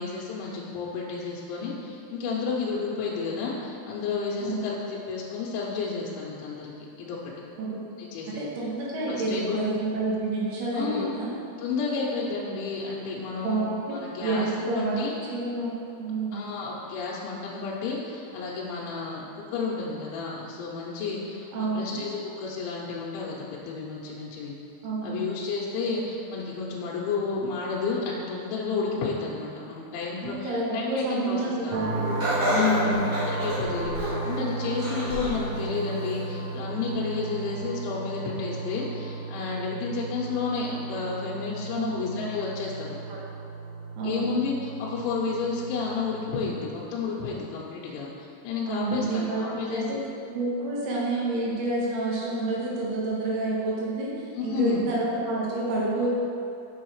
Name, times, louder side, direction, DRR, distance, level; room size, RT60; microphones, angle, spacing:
voice 1, 0.0-7.3 8.0-8.5 9.1-9.6 10.7-11.1 11.6-15.1 16.3-24.6 25.0-31.9 32.5-33.0 33.3-43.0 44.0-50.0 54.3-54.8, left 4 dB, 80° left, -5 dB, 3.1 m, -31 dB
voice 2, 8.4-11.3 12.1-12.5 13.4-14.0 14.2-16.6 21.5-22.0 24.8-25.2 30.2-32.2 32.7-33.1 41.8-42.2 43.1-43.2 44.0-44.4 48.7-50.0 50.3-56.1, right 2 dB, 65° right, -6 dB, 2.9 m, -29 dB
sound 1, 31.7-46.5, right 3 dB, 85° right, 3.5 m, -35 dB
Laughter, 32.2-34.3 34.8-35.4 35.9-36.0 37.0-37.1, equal, 50° right, 2.2 m, -28 dB
7.3 x 6.3 x 4.7 m, 2.6 s
omnidirectional pair, 5.7 m